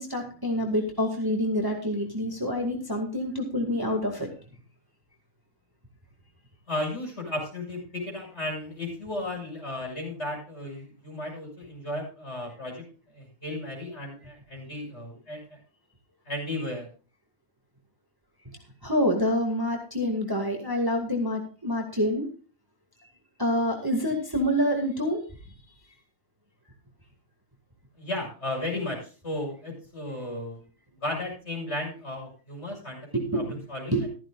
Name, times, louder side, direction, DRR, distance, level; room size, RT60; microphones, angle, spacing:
voice 1, 0.0-4.3 18.8-22.3 23.4-25.2 33.1-33.6 33.9-34.0, equal, 15° right, 1 dB, 2.1 m, -27 dB
voice 2, 6.7-12.8 13.1-15.6 16.2-16.9 28.0-30.6 31.0-33.0 33.3-34.1, left 1 dB, 45° left, -1 dB, 6.7 m, -34 dB
14.5 x 14.0 x 2.5 m, 0.37 s
omnidirectional pair, 1.5 m